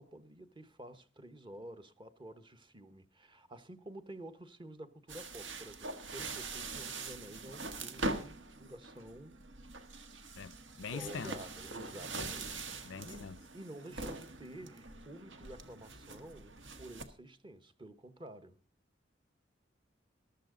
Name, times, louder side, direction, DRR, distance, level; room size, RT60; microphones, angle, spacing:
voice 1, 0.0-9.4 10.9-13.3 13.5-18.6, right 1 dB, 25° right, 1.1 m, -50 dB
sound 1, 5.1-17.1, right 2 dB, 75° right, 1.5 m, -43 dB
voice 2, 10.4-11.3 12.1-12.3 12.8-13.4, left 5 dB, 90° left, 0.6 m, -43 dB
14.5 x 12.5 x 3.8 m
head